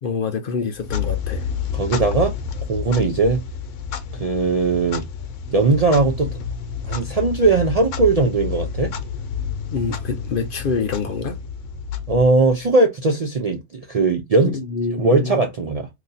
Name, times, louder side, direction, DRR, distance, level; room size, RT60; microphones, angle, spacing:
voice 1, 0.0-1.5 9.7-11.4 14.4-15.4, left 4 dB, 55° left, 0.7 m, -26 dB
Clock, 0.7-12.7, left 7 dB, 85° left, 1.0 m, -29 dB
voice 2, 1.7-2.3 2.7-3.4 4.1-5.0 5.5-6.4 6.9-8.9 12.1-14.5 14.9-15.9, right 3 dB, 50° right, 0.4 m, -19 dB
2.8 x 2.5 x 3.9 m
omnidirectional pair, 1.2 m